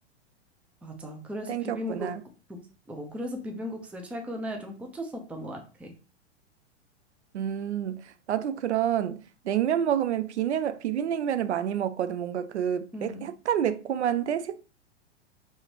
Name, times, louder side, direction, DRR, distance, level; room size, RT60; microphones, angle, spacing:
voice 1, 0.8-2.2 2.5-2.6 2.9-5.9 12.9-13.3, equal, 5° right, 0.6 m, -37 dB
voice 2, 1.5-2.2 7.3-8.0 8.3-14.7, right 10 dB, 75° right, 0.5 m, -28 dB
5.2 x 3.0 x 2.8 m
figure-of-eight pair, 105°, 35 cm